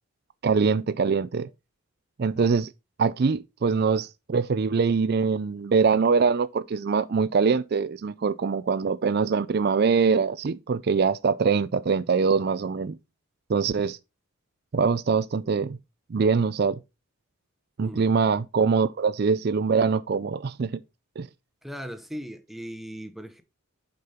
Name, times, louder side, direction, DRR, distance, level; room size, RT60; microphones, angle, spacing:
voice 1, 0.4-1.5 2.2-2.7 3.0-13.0 13.5-14.0 14.7-15.8 16.1-16.8 17.8-20.7 21.2-21.3, right 5 dB, 45° right, 0.4 m, -23 dB
voice 2, 21.6-23.4, equal, ahead, 0.8 m, -38 dB
6.7 x 5.2 x 4.2 m
head